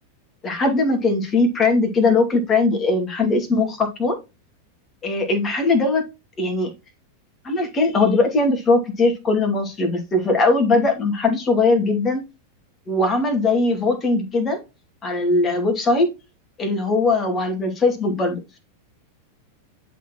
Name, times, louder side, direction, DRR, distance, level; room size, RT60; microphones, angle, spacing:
voice 1, 0.4-4.2 5.0-6.1 6.4-6.7 7.4-12.2 12.9-14.6 15.0-16.1 16.6-18.4, left 3 dB, 25° left, 4 dB, 2.5 m, -20 dB
11.0 x 4.3 x 3.1 m, 0.26 s
figure-of-eight pair, 90°, 0 cm